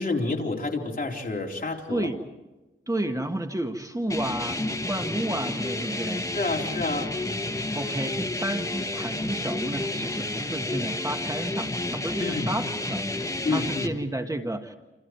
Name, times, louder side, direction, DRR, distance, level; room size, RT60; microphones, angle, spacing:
voice 1, 0.0-2.1 6.3-7.1 12.2-12.5 13.4-13.9, left 3 dB, 45° left, 0 dB, 4.1 m, -29 dB
voice 2, 1.9-2.2 2.9-6.3 7.7-14.7, right 1 dB, 15° right, 5 dB, 1.7 m, -31 dB
sound 1, 4.1-13.9, left 2 dB, 15° left, 1.5 m, -30 dB
28.5 x 28.0 x 4.6 m, 1.1 s
wide cardioid pair, 90°, 21 cm